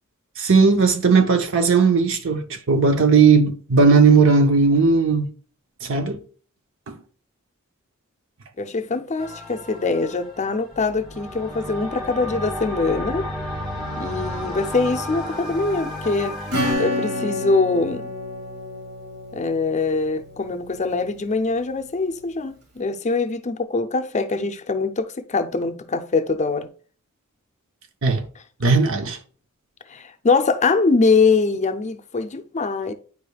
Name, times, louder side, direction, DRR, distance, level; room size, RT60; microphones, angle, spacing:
voice 1, 0.4-5.3 5.8-6.2 6.9-7.0 28.0-28.2 28.6-29.2, right 4 dB, 65° right, 0.8 m, -17 dB
voice 2, 8.6-13.3 14.0-16.4 16.8-18.1 19.3-26.7 29.9-32.9, left 4 dB, 35° left, 0.5 m, -23 dB
sound 1, 9.2-16.7, left 1 dB, 20° right, 2.5 m, -32 dB
Acoustic guitar / Strum, 16.5-20.8, left 1 dB, 80° right, 2.0 m, -29 dB
9.4 x 4.9 x 2.3 m
head